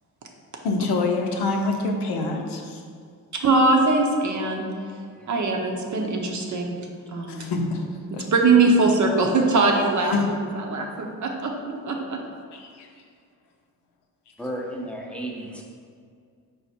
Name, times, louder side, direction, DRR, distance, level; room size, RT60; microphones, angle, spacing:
voice 1, 0.6-2.8 5.3-5.4 7.3-8.3 10.1-10.3 12.5-12.9, left 3 dB, 65° left, 2 dB, 0.7 m, -26 dB
voice 2, 3.4-4.7 5.3-6.8 7.1-7.5 8.3-10.2 10.7-12.2, right 3 dB, 45° right, 1 dB, 0.7 m, -21 dB
voice 3, 14.4-15.6, right 1 dB, 5° left, -1 dB, 0.7 m, -33 dB
4.6 x 2.1 x 4.2 m, 2.2 s
supercardioid pair, 50°, 43 cm